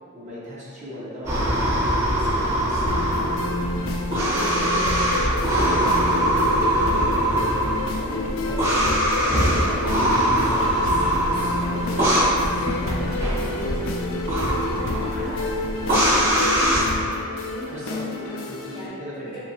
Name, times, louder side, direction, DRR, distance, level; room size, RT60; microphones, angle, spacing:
voice 1, 0.1-1.5 2.6-2.8 4.1-8.7 9.2-10.6 17.7-18.0 18.5-19.4, equal, 35° right, -8 dB, 0.5 m, -37 dB
sound 1, 1.2-16.8, right 1 dB, 60° right, 1.0 m, -22 dB
voice 2, 2.1-3.3 10.6-13.9 14.3-17.1 17.5-17.8 18.2-18.4 18.7-19.4, left 1 dB, 25° left, -8 dB, 0.6 m, -38 dB
sound 2, 2.9-18.9, left 2 dB, 60° left, 0.3 m, -29 dB
sound 3, 8.4-9.0 9.7-11.1 11.8-13.2, equal, 90° right, 0.8 m, -41 dB
2.9 x 2.8 x 2.6 m, 2.2 s
head